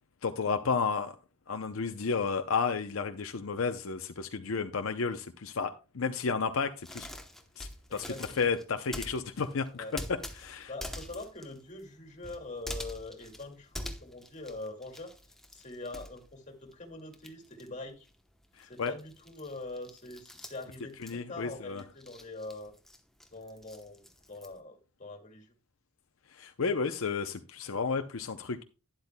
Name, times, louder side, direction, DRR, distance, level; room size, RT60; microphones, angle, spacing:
voice 1, 0.2-1.1 1.5-7.1 7.6-10.7 18.6-18.9 21.0-21.8 26.3-28.6, left 5 dB, 70° left, 0.6 m, -32 dB
sound 1, 6.8-16.8 17.1-24.6, left 1 dB, ahead, 0.9 m, -45 dB
voice 2, 7.9-8.5 9.7-10.0 10.7-15.1 15.5-18.1 18.6-22.7 23.3-25.5, left 2 dB, 35° left, 2.2 m, -43 dB
12.0 x 10.5 x 2.2 m
head